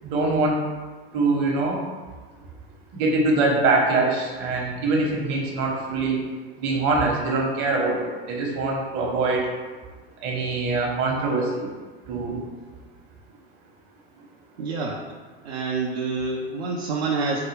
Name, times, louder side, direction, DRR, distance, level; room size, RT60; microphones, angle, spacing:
voice 1, 0.0-0.6 1.1-1.9 2.9-6.2 6.6-9.5 10.2-11.7 12.1-12.4, right 3 dB, 55° right, -1 dB, 1.1 m, -23 dB
voice 2, 14.6-15.0 15.4-17.4, right 4 dB, 75° right, -2 dB, 0.5 m, -27 dB
4.6 x 2.2 x 3.2 m, 1.4 s
hypercardioid pair, 85°, 31 cm